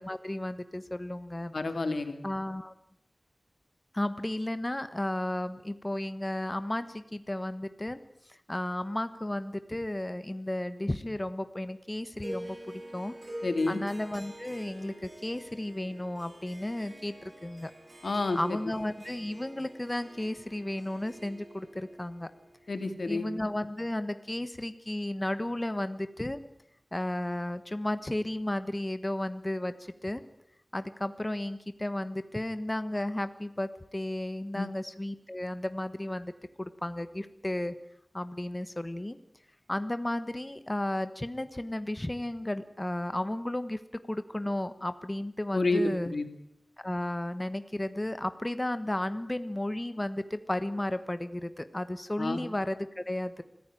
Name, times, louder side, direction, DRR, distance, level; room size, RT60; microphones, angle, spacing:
voice 1, 0.0-1.5 2.2-2.7 3.9-8.0 8.3-13.1 13.7-17.7 18.3-22.3 23.1-26.4 26.9-30.2 30.7-36.3 36.6-37.7 38.1-39.2 39.7-43.8 44.1-46.1 46.8-53.4, left 1 dB, 25° left, 11 dB, 1.3 m, -33 dB
voice 2, 1.5-2.2 13.4-13.8 18.0-18.6 22.7-23.3 34.5-34.7 45.5-46.3 52.2-52.4, left 2 dB, 90° left, 9 dB, 2.5 m, -29 dB
Harp, 12.2-23.5, right 1 dB, 55° right, 7.5 m, -47 dB
26.0 x 15.0 x 9.2 m, 0.77 s
wide cardioid pair, 65°, 0 cm